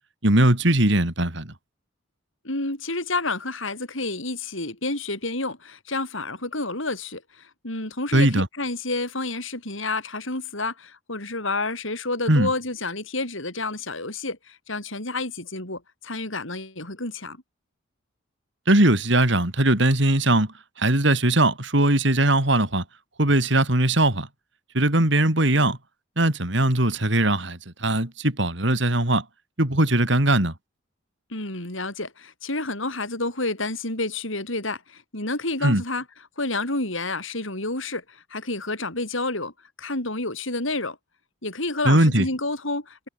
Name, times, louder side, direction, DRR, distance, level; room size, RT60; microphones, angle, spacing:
voice 1, 0.2-1.5 8.1-8.5 12.3-12.5 18.7-20.5 20.8-22.8 23.2-24.3 24.8-25.8 26.2-29.2 29.6-30.5 35.6-35.8 41.8-42.3, right 1 dB, 60° right, 3.6 m, -20 dB
voice 2, 2.4-17.4 31.3-36.0 36.4-39.5 39.8-41.0 41.4-43.1, left 2 dB, 75° left, 7.3 m, -29 dB
head